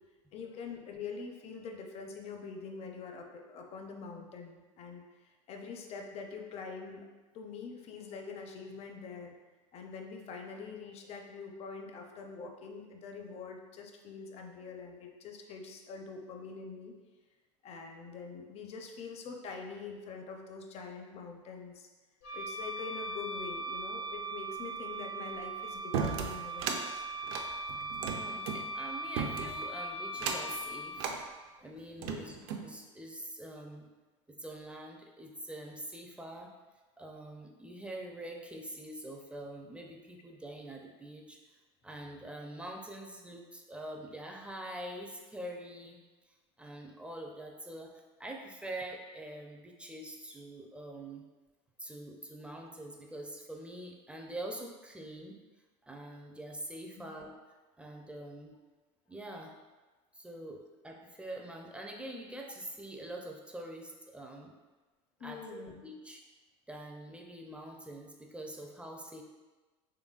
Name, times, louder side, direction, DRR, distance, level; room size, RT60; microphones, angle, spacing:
voice 1, 0.3-5.0 5.5-7.0 7.3-9.4 9.7-16.9 17.6-21.9 22.3-27.0 32.0-32.4 57.0-57.1 65.2-65.8, left 5 dB, 40° left, 3 dB, 0.6 m, -44 dB
Wind instrument woodwind instrument, 22.2-31.0, right 2 dB, 85° left, 1.1 m, -39 dB
sound 1, 25.9-26.8 27.2-28.6 29.2-29.7 30.1-30.6 31.0-31.2 31.8-32.7, right 6 dB, 65° right, 0.5 m, -35 dB
voice 2, 28.1-31.1 31.6-32.4 32.6-33.9 34.3-36.5 37.0-41.4 41.8-46.0 46.6-47.9 48.2-51.2 51.8-55.4 55.8-57.4 57.8-58.6 59.1-59.5 60.1-64.5 65.2-66.2 66.7-69.2, right 1 dB, 5° right, 1 dB, 0.4 m, -45 dB
3.8 x 3.4 x 2.4 m, 1.2 s
supercardioid pair, 105°, 16 cm